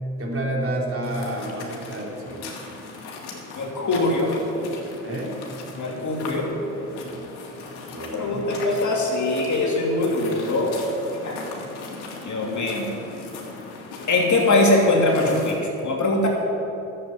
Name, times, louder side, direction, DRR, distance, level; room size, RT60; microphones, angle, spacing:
voice 1, 0.2-2.5 5.0-5.4 7.0-7.3 7.9-8.5, right 1 dB, 35° right, -2 dB, 3.4 m, -30 dB
sound 1, 1.0-15.6, left 3 dB, 70° left, 2.3 m, -39 dB
voice 2, 3.6-4.7 5.8-6.5 8.0-10.7 11.2-11.4 12.2-12.9 14.1-16.3, left 2 dB, 45° left, -1 dB, 3.0 m, -22 dB
11.5 x 7.7 x 8.7 m, 3.0 s
hypercardioid pair, 55°, 40 cm